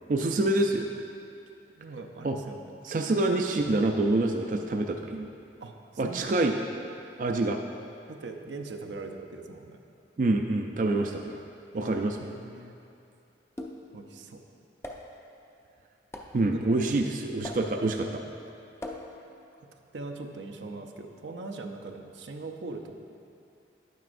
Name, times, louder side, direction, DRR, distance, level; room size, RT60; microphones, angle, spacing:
voice 1, 0.1-0.9 2.2-2.4 2.8-5.3 6.0-6.6 7.2-7.6 10.2-11.4 11.7-12.2 16.3-18.2, right 2 dB, 45° right, 3 dB, 0.4 m, -26 dB
voice 2, 1.7-2.6 5.6-6.3 8.1-9.8 11.8-12.7 13.9-14.4 16.4-16.8 19.6-19.7 19.9-22.9, right 3 dB, 90° right, 3 dB, 0.6 m, -41 dB
sound 1, 13.6-14.0 14.8-15.3 16.1-16.5 17.4-17.9 18.8-19.3, left 1 dB, 15° left, 0.4 m, -41 dB
11.0 x 9.1 x 2.6 m, 2.6 s
head